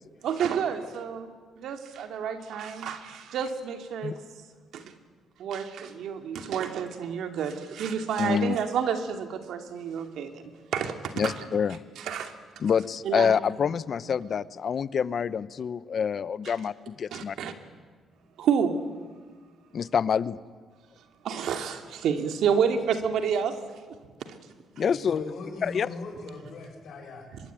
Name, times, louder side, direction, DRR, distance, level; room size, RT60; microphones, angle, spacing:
voice 1, 0.2-1.3 1.6-4.2 4.7-4.9 5.4-11.3 12.0-12.3 13.0-13.3 16.4-16.5 17.1-17.5 18.4-18.8 21.2-23.6 24.3-24.4, right 7 dB, 75° right, 6 dB, 2.5 m, -29 dB
voice 2, 8.2-8.6 11.2-11.8 12.6-17.4 19.7-20.4 24.8-25.3 25.6-25.9, left 7 dB, 50° left, 17 dB, 0.9 m, -27 dB
voice 3, 24.8-27.5, left 3 dB, 70° left, 2 dB, 7.5 m, -40 dB
24.0 x 22.0 x 9.2 m, 1.5 s
cardioid pair, 90°, 0 cm